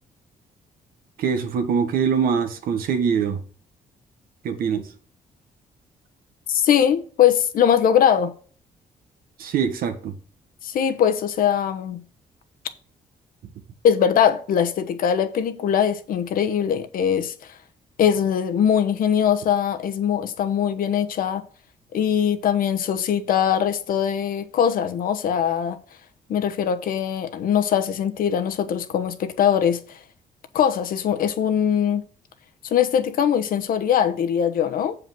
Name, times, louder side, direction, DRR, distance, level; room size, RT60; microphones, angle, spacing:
voice 1, 1.2-3.4 4.4-4.8 9.4-10.1, right 6 dB, 85° right, 1.4 m, -23 dB
voice 2, 6.5-8.3 10.6-12.0 13.8-17.3 18.0-21.4 21.9-25.8 26.3-30.0 30.5-32.0 32.6-35.0, left 8 dB, 75° left, 1.1 m, -21 dB
7.6 x 5.0 x 6.1 m
cardioid pair, 110°, 15 cm